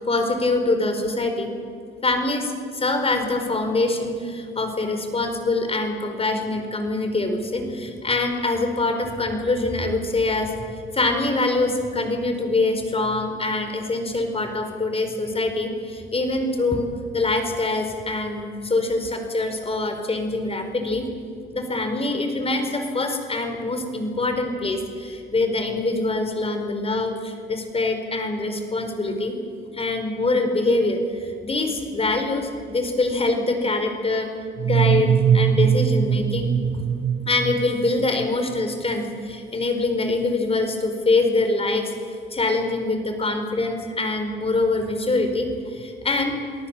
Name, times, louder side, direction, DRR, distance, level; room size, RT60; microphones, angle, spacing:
voice 1, 0.0-1.5 2.0-10.5 10.9-16.9 17.1-21.1 21.5-29.3 29.7-34.3 34.6-36.8 37.3-46.3, left 2 dB, 30° left, 6 dB, 4.6 m, -24 dB
sound 1, 34.6-38.3, right 9 dB, 60° right, 1.0 m, -21 dB
28.0 x 18.5 x 7.4 m, 2.4 s
cardioid pair, 90°, 20 cm